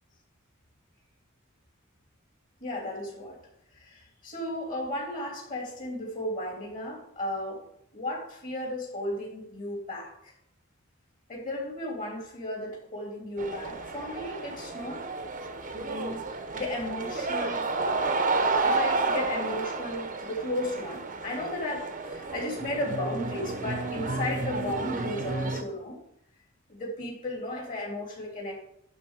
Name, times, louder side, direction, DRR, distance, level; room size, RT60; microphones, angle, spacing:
voice 1, 2.6-3.4 3.7-7.6 7.9-10.3 11.3-15.0 15.7-16.2 16.5-17.6 18.6-26.0 26.7-28.7, left 1 dB, 40° left, -1 dB, 3.4 m, -34 dB
sound 1, 13.4-25.6, right 3 dB, 40° right, 1.1 m, -31 dB
11.5 x 4.3 x 6.6 m, 0.71 s
head